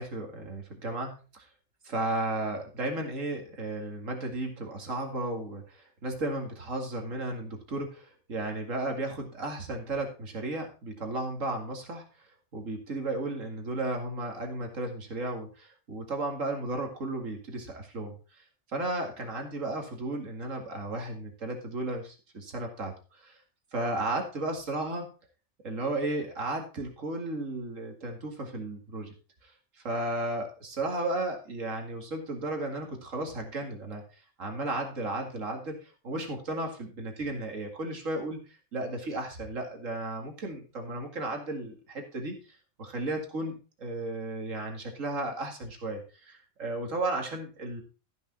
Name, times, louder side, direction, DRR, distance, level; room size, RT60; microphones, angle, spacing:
voice 1, 0.0-1.5 1.8-12.1 12.5-18.4 18.7-23.4 23.7-25.1 25.6-29.1 29.4-29.5 29.8-42.4 42.8-47.8, right 2 dB, 65° right, 2 dB, 2.5 m, -34 dB
14.0 x 6.4 x 4.1 m, 0.35 s
omnidirectional pair, 1.4 m